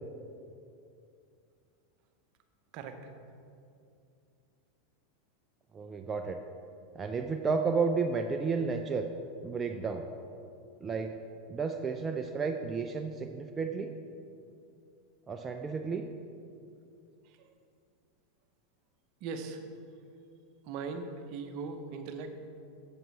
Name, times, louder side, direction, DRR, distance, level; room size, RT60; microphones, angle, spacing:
voice 1, 5.7-6.4 6.9-9.1 9.4-10.1 10.8-11.1 11.5-13.9 15.3-16.0, right 5 dB, 25° right, 5 dB, 0.5 m, -32 dB
voice 2, 19.2-19.6 20.7-22.4, right 4 dB, 55° right, 7 dB, 0.8 m, -39 dB
7.9 x 7.4 x 4.7 m, 2.5 s
hypercardioid pair, 100°, 0 cm